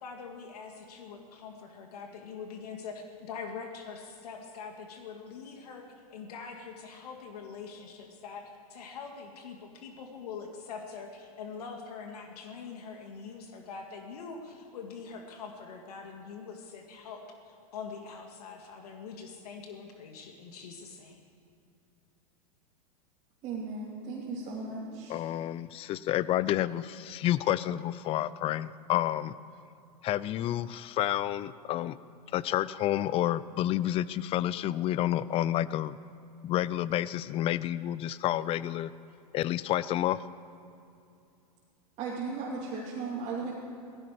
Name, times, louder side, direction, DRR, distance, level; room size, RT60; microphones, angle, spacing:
voice 1, 0.0-8.4 8.7-21.2, left 5 dB, 75° left, 3 dB, 2.0 m, -43 dB
voice 2, 23.4-25.2 42.0-43.5, right 4 dB, 35° right, -6 dB, 3.0 m, -36 dB
voice 3, 25.1-29.3 30.0-32.0 32.3-36.0 36.4-38.9 39.3-40.2, left 13 dB, 30° left, 18 dB, 0.5 m, -29 dB
17.5 x 15.5 x 5.0 m, 2.7 s
hypercardioid pair, 120°, 20 cm